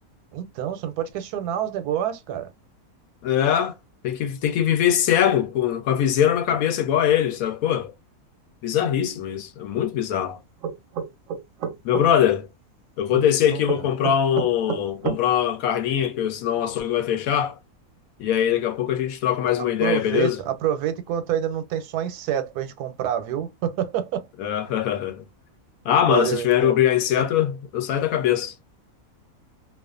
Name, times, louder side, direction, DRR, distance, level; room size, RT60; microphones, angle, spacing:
voice 1, 0.3-2.5 13.1-13.2 13.5-13.6 19.8-24.3 26.1-26.8, right 10 dB, 90° right, 1.1 m, -27 dB
voice 2, 3.2-3.7 4.0-7.9 8.6-10.4 11.8-12.5 13.0-17.6 18.2-20.4 24.4-25.2 25.8-28.5, left 10 dB, 75° left, 1.0 m, -22 dB
sound 1, 10.6-12.1 13.7-15.2, right 8 dB, 70° right, 0.8 m, -29 dB
2.4 x 2.3 x 2.3 m
omnidirectional pair, 1.6 m